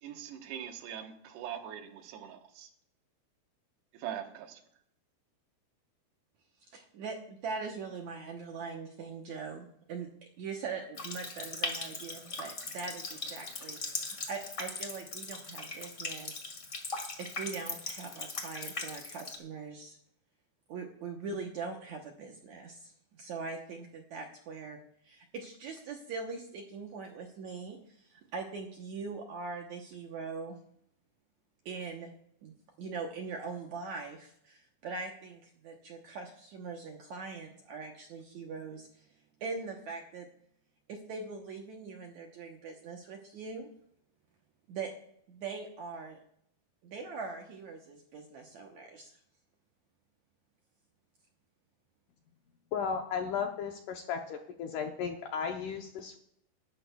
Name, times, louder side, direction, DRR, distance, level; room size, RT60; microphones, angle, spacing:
voice 1, 0.0-2.7 3.9-4.6, right 10 dB, 90° right, 3.3 m, -42 dB
voice 2, 6.6-16.6 17.2-20.0 20.7-24.8 25.0-30.5 31.7-32.1 32.4-39.1 39.4-40.3 40.9-43.7 44.7-44.9 45.3-46.2 46.8-49.2, right 4 dB, 75° right, 1.7 m, -42 dB
Water tap faucet, 10.9-19.4, left 3 dB, 40° left, 1.2 m, -39 dB
voice 3, 52.7-56.2, left 6 dB, 75° left, 2.0 m, -35 dB
19.0 x 12.5 x 2.3 m
omnidirectional pair, 4.6 m